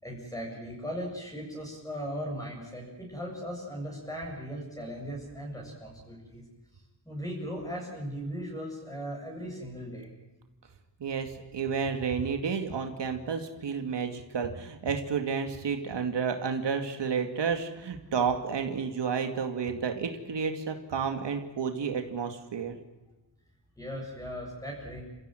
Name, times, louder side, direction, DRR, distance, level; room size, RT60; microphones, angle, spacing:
voice 1, 0.0-6.5 6.7-10.1 23.8-25.0, equal, 10° left, -2 dB, 7.7 m, -38 dB
voice 2, 11.0-22.8, right 6 dB, 80° right, 6 dB, 2.5 m, -31 dB
29.5 x 16.0 x 9.2 m, 1.1 s
wide cardioid pair, 140°, 42 cm